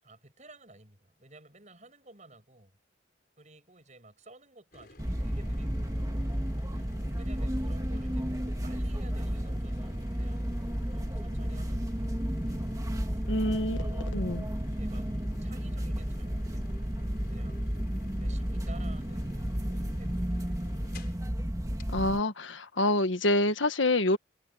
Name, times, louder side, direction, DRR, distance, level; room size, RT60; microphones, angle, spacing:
voice 1, 0.0-2.7 3.4-6.0 7.1-10.5 11.0-12.2 12.4-12.7 13.0-13.5 13.8-14.2 14.8-15.1 15.4-16.7 17.3-17.7 18.2-21.2, right 2 dB, 40° right, 7.2 m, -54 dB
sound 1, 4.7-21.3 21.8-21.9, left 2 dB, 55° left, 4.8 m, -54 dB
Train ambience, 5.0-22.2, equal, 20° right, 1.8 m, -32 dB
voice 2, 13.3-14.4 21.9-24.2, left 2 dB, 90° left, 1.6 m, -27 dB
head